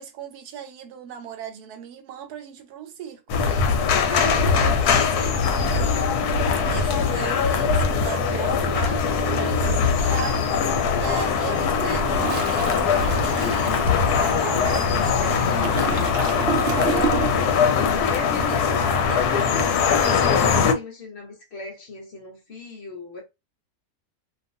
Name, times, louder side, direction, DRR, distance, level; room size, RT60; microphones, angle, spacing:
voice 1, 0.0-3.4 4.1-5.7 6.6-10.5 10.9-15.5 16.6-17.7 18.4-18.6 18.8-20.2, right 9 dB, 90° right, 1.2 m, -37 dB
sound 1, 3.3-20.7, left 6 dB, 85° left, 1.1 m, -21 dB
Toilet flush, 11.6-17.6 17.8-18.1, right 6 dB, 65° right, 0.6 m, -31 dB
voice 2, 15.7-16.2 18.0-19.1 20.0-23.2, left 3 dB, 50° left, 1.0 m, -37 dB
2.6 x 2.3 x 2.6 m
omnidirectional pair, 1.6 m